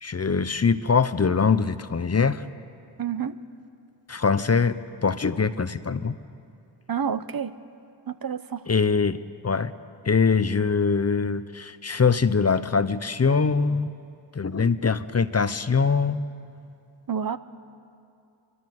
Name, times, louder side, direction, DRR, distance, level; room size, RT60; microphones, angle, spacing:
voice 1, 0.0-2.4 4.1-6.1 8.7-9.7 10.1-13.9 14.3-16.2, left 5 dB, 35° left, 13 dB, 0.8 m, -23 dB
voice 2, 3.0-3.4 6.9-7.5 8.1-8.6 17.1-17.4, right 7 dB, 50° right, 12 dB, 1.0 m, -28 dB
23.5 x 22.0 x 7.8 m, 2.5 s
cardioid pair, 55°, 46 cm